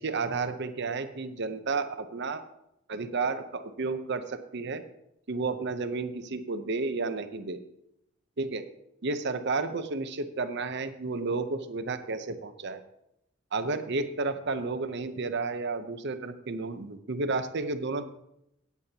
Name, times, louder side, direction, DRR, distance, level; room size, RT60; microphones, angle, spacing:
voice 1, 0.0-2.4 2.9-4.8 5.3-7.6 8.4-8.7 9.0-12.8 13.5-18.1, right 3 dB, 60° right, 9 dB, 0.7 m, -32 dB
16.5 x 8.4 x 2.9 m, 0.82 s
head